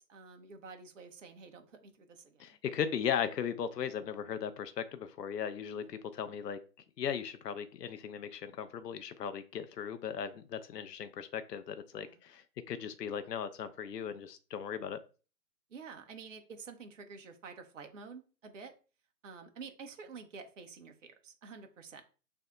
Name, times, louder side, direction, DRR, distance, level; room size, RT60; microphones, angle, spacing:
voice 1, 0.0-2.6 5.7-5.9 11.9-12.2 15.7-18.7 19.2-22.0, right 5 dB, 50° right, 0.7 m, -49 dB
voice 2, 2.4-6.6 7.0-15.0, left 8 dB, 75° left, 0.6 m, -37 dB
6.4 x 2.7 x 2.2 m
figure-of-eight pair, 145°, 49 cm